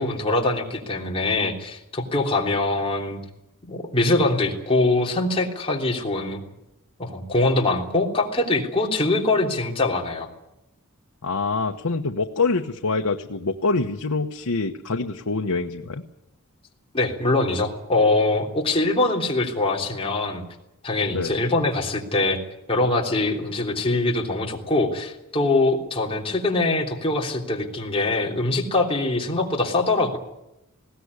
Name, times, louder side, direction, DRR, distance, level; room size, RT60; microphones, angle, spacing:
voice 1, 0.0-3.2 3.6-6.4 7.0-10.3 16.9-20.4 20.8-22.4 22.7-30.2, left 2 dB, 25° left, 0 dB, 3.4 m, -23 dB
voice 2, 11.2-16.0 21.1-21.3, left 3 dB, 90° left, 3 dB, 1.1 m, -25 dB
20.5 x 17.5 x 9.6 m, 0.89 s
head